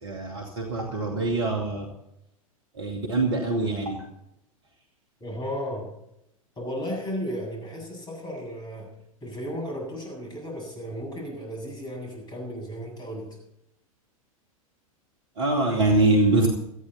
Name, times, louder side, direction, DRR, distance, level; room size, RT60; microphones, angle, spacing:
voice 1, 0.0-1.9 2.8-4.0 15.4-16.5, right 2 dB, 60° right, 2 dB, 2.5 m, -24 dB
voice 2, 5.2-5.9 6.6-8.9 9.2-13.3, equal, 20° left, 1 dB, 7.7 m, -34 dB
19.0 x 14.0 x 4.2 m, 0.81 s
figure-of-eight pair, 90°, 18 cm